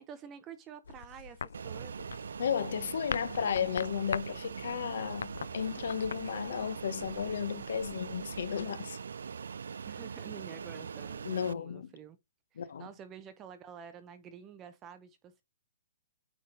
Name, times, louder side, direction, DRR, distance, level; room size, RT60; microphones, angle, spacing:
voice 1, 0.0-2.2 9.9-12.2 12.5-15.4, right 8 dB, 15° right, 0.6 m, -49 dB
sound 1, 0.8-8.7, left 6 dB, 80° left, 0.4 m, -44 dB
Fixed-wing aircraft airplane, 1.5-11.5, right 6 dB, 90° right, 0.3 m, -42 dB
voice 2, 2.4-9.0 11.2-11.9 12.6-12.9, left 7 dB, 55° left, 0.9 m, -34 dB
9.2 x 3.6 x 3.9 m
hypercardioid pair, 175°, 0 cm